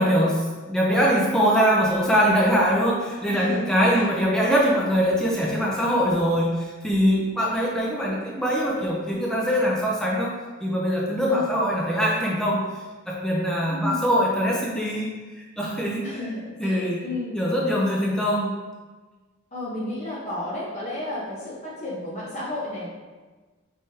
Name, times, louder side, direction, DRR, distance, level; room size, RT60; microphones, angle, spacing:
voice 1, 0.0-10.3 10.6-12.6 13.1-15.1 15.6-16.0 16.6-17.0 17.3-18.5, equal, 5° left, -4 dB, 0.5 m, -22 dB
voice 2, 3.3-4.0 11.3-11.7 13.7-14.0 16.0-17.4 19.5-22.9, left 2 dB, 35° left, -8 dB, 0.9 m, -32 dB
5.4 x 3.4 x 2.7 m, 1.3 s
head